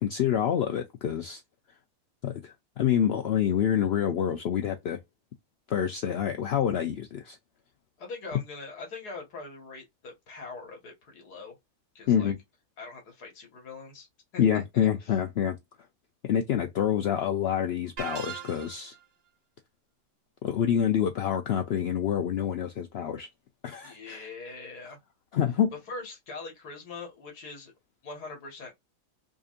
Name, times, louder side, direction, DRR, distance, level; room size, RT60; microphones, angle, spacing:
voice 1, 0.0-1.4 2.2-5.0 5.7-7.4 12.1-12.4 14.4-15.6 16.2-18.9 20.4-23.3 23.6-24.2 25.3-25.7, left 9 dB, 70° left, 0.6 m, -27 dB
voice 2, 8.0-11.6 12.0-12.3 12.8-14.1 14.3-15.2 23.8-25.0 25.9-27.7 28.0-28.7, left 3 dB, 90° left, 2.0 m, -42 dB
sound 1, 18.0-19.0, right 8 dB, 50° right, 0.6 m, -39 dB
5.1 x 2.6 x 2.5 m
omnidirectional pair, 1.6 m